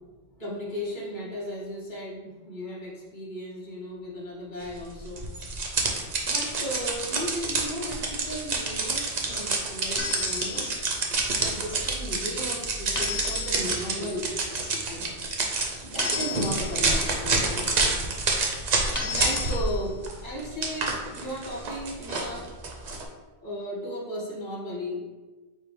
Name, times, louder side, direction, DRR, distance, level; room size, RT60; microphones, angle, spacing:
voice 1, 0.4-5.3 6.2-10.7 11.4-15.1 15.8-17.7 19.0-22.5 23.4-25.0, equal, 45° left, -4 dB, 1.2 m, -35 dB
sound 1, 5.2-19.7 20.0-23.0, right 3 dB, 45° right, 0.7 m, -28 dB
sound 2, 8.8-9.4 10.0-10.1 10.5-10.7 11.2-12.3 12.6-13.6 14.1-14.7, right 1 dB, 5° left, 1.3 m, -41 dB
sound 3, 10.0-10.9 13.0-13.8 16.0-16.9 18.9-19.9, left 5 dB, 20° left, 0.6 m, -34 dB
4.9 x 2.1 x 4.6 m, 1.3 s
omnidirectional pair, 1.1 m